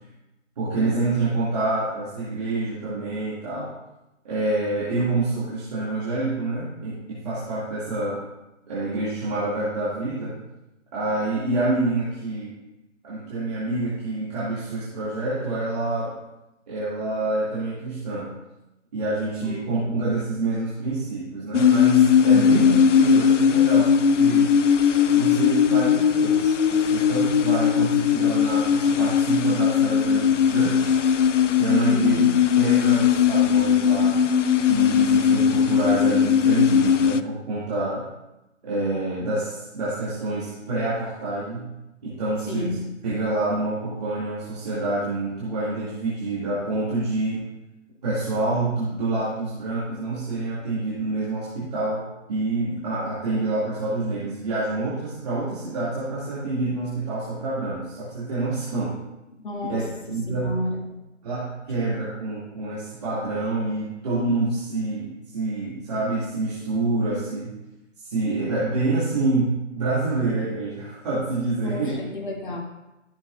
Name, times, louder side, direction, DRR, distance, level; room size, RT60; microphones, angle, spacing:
voice 1, 0.6-3.7 4.2-8.2 8.7-10.4 10.9-12.5 13.0-16.1 16.7-18.3 18.9-24.5 25.0-30.9 31.6-32.3 32.5-34.2 34.6-38.1 38.6-41.7 42.0-47.4 48.0-59.0 59.7-59.8 60.1-60.6 61.2-67.5 68.0-72.0, right 2 dB, 30° right, -10 dB, 2.3 m, -27 dB
voice 2, 19.4-20.0 22.3-22.8 31.9-32.3 42.5-42.8 59.4-60.9 71.6-72.6, left 2 dB, 40° left, 0 dB, 1.7 m, -31 dB
sound 1, 21.5-37.2, left 8 dB, 70° left, 0.5 m, -19 dB
13.5 x 6.9 x 2.5 m, 0.97 s
figure-of-eight pair, 150°, 38 cm